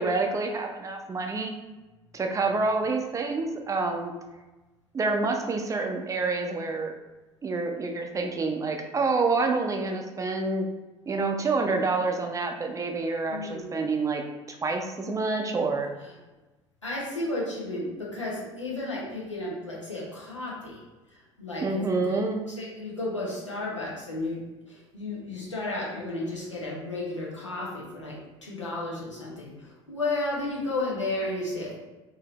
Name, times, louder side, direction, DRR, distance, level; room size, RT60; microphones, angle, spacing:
voice 1, 0.0-1.5 2.1-4.1 4.9-6.9 7.4-10.7 11.1-14.2 14.6-15.9 21.6-22.4, right 3 dB, 20° right, 3 dB, 0.5 m, -27 dB
voice 2, 13.3-13.7 16.8-20.8 21.4-22.2 22.5-31.8, left 2 dB, 90° left, -5 dB, 0.9 m, -33 dB
3.9 x 2.7 x 3.0 m, 1.1 s
figure-of-eight pair, 65°, 15 cm